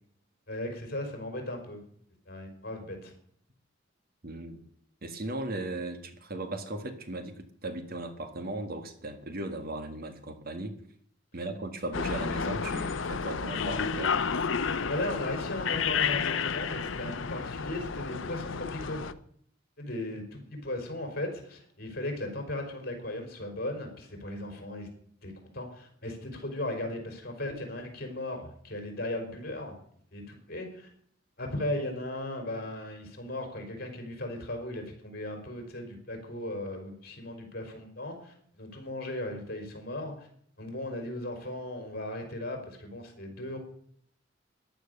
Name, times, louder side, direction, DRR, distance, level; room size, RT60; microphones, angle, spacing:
voice 1, 0.5-1.8 2.3-3.1 14.9-19.1 19.8-24.9 25.2-29.8 30.1-30.9 31.4-40.3 40.6-43.6, left 1 dB, 55° left, 4 dB, 4.7 m, -37 dB
voice 2, 4.2-4.6 5.0-10.8 11.3-14.1, right 2 dB, 50° right, 8 dB, 1.7 m, -37 dB
sound 1, 11.9-19.1, left 6 dB, 80° left, 0.8 m, -31 dB
14.0 x 11.0 x 6.7 m, 0.64 s
head